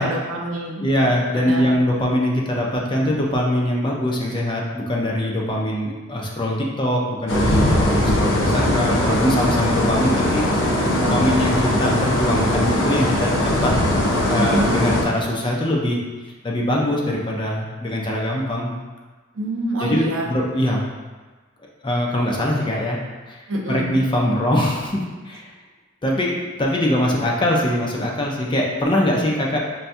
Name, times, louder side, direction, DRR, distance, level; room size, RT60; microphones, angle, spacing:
voice 1, 0.0-0.8 1.3-1.6 14.4-14.8 19.4-20.3 23.5-23.9, right 1 dB, 85° right, -1 dB, 0.6 m, -25 dB
voice 2, 0.8-10.5 11.0-13.7 14.1-16.0 16.4-18.7 19.8-20.8 21.8-23.0 23.3-23.4 23.7-25.4 26.0-29.6, left 1 dB, 25° left, -2 dB, 0.5 m, -22 dB
sound 1, 7.3-15.0, left 1 dB, 65° left, 0.6 m, -20 dB
5.5 x 2.2 x 2.6 m, 1.3 s
head